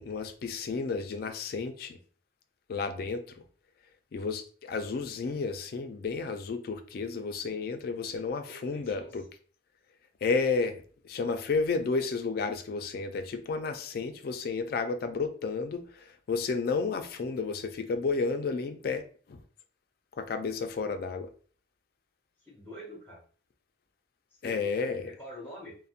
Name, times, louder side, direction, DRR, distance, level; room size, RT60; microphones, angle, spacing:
voice 1, 0.0-2.0 2.7-3.2 4.1-9.2 10.2-10.8 11.0-15.8 16.3-19.0 19.3-19.4 20.2-21.3 24.4-25.1, left 4 dB, 50° left, 0.3 m, -31 dB
voice 2, 7.7-9.2 20.8-21.1 22.4-23.2 24.4-25.8, left 1 dB, 10° left, 1.0 m, -47 dB
2.6 x 2.1 x 2.4 m
head